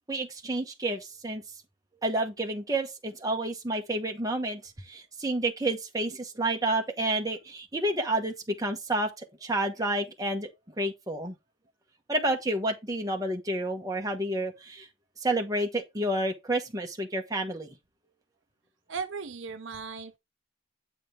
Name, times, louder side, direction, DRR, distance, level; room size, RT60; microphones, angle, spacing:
voice 1, 0.1-1.4 2.0-10.5 10.8-11.3 12.1-14.9 15.2-17.7, right 1 dB, 15° right, 1.0 m, -30 dB
voice 2, 18.9-20.2, right 5 dB, 65° right, 0.7 m, -37 dB
7.8 x 5.0 x 3.7 m
head